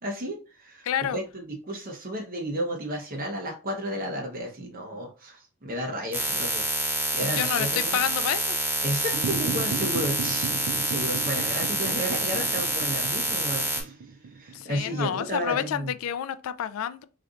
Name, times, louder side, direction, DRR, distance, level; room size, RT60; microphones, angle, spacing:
voice 1, 0.0-8.0 8.8-14.0 14.3-16.0, equal, 40° right, 1.0 m, -33 dB
voice 2, 0.8-1.2 7.2-8.6 14.5-17.0, left 9 dB, 80° left, 0.3 m, -29 dB
sound 1, 6.1-13.8, right 2 dB, 10° right, 0.7 m, -27 dB
sound 2, 9.1-15.7, right 4 dB, 90° right, 0.6 m, -36 dB
3.9 x 3.2 x 2.5 m
head